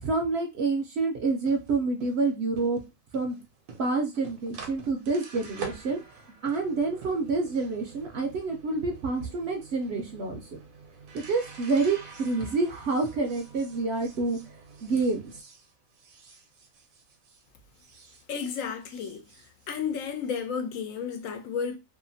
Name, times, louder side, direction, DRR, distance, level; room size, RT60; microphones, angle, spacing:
voice 1, 0.0-2.8 3.1-3.4 3.8-6.0 6.4-10.4 11.1-14.4 14.8-15.3, right 3 dB, 65° right, 0.7 m, -28 dB
sound 1, 1.3-17.5 17.7-20.4, right 5 dB, 85° right, 1.1 m, -47 dB
voice 2, 18.3-19.2 19.7-21.8, left 6 dB, 80° left, 1.0 m, -32 dB
2.8 x 2.4 x 2.6 m
omnidirectional pair, 1.4 m